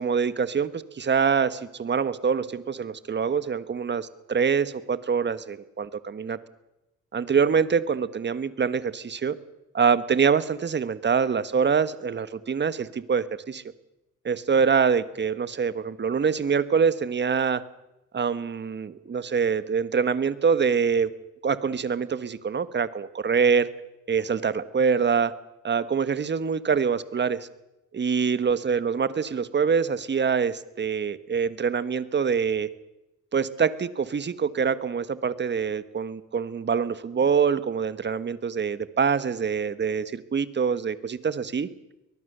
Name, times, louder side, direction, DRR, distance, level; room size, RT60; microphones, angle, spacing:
voice 1, 0.0-6.4 7.1-9.3 9.7-13.6 14.2-17.6 18.1-21.1 21.4-23.7 24.1-25.3 25.6-27.5 27.9-32.7 33.3-41.7, right 6 dB, 35° right, 14 dB, 1.4 m, -25 dB
23.0 x 19.5 x 6.8 m, 0.94 s
cardioid pair, 90°, 30 cm